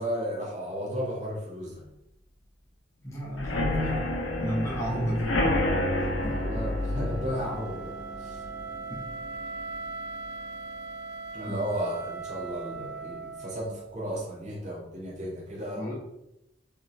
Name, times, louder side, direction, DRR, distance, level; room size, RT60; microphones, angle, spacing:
voice 1, 0.0-1.8 6.1-8.4 11.3-15.8, equal, 40° right, -5 dB, 2.0 m, -34 dB
voice 2, 3.0-4.1 4.4-5.4 6.2-6.4 8.9-9.1 15.7-15.9, equal, 15° left, -7 dB, 1.9 m, -32 dB
sound 1, 3.4-11.0 11.4-11.7 12.0-12.1 12.5-12.6, left 1 dB, 90° left, 1.4 m, -30 dB
Wind instrument woodwind instrument, 5.9-13.9, right 4 dB, 55° right, 0.5 m, -40 dB
5.6 x 4.4 x 4.7 m, 0.87 s
head